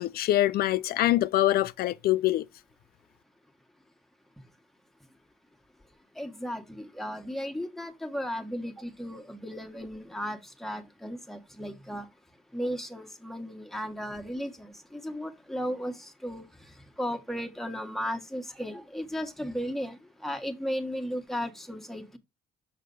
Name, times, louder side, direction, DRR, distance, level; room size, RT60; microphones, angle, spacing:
voice 1, 0.0-2.5, left 14 dB, 65° left, 0.4 m, -24 dB
voice 2, 6.2-12.0 12.5-16.4 17.0-22.2, equal, ahead, 1.4 m, -35 dB
6.6 x 6.4 x 3.9 m
cardioid pair, 110°, 17 cm